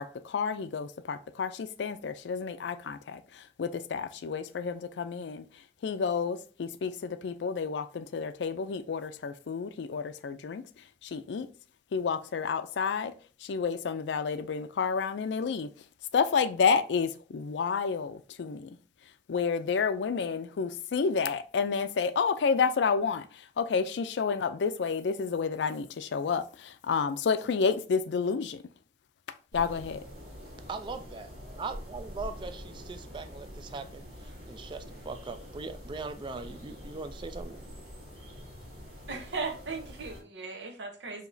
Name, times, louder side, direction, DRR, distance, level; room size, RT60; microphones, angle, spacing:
voice 1, 0.0-5.5 5.8-10.7 11.0-11.5 11.9-13.1 13.4-15.7 16.1-18.8 19.3-28.6 29.5-30.0, left 5 dB, 80° left, 0.4 m, -30 dB
sound 1, 29.5-40.2, equal, 60° right, 2.2 m, -45 dB
voice 2, 30.7-31.3 31.6-34.1 34.5-37.6, right 4 dB, 25° right, 0.3 m, -40 dB
voice 3, 39.1-41.3, right 4 dB, 80° right, 0.8 m, -37 dB
4.8 x 2.9 x 2.6 m
head